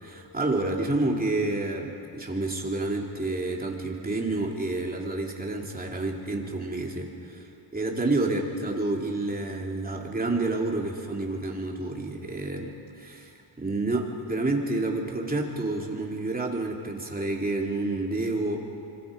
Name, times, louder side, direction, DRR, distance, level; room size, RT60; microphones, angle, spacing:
voice 1, 0.0-7.4 7.7-18.6, right 2 dB, 20° right, 0 dB, 2.9 m, -29 dB
25.5 x 25.0 x 5.2 m, 2.9 s
cardioid pair, 110°, 46 cm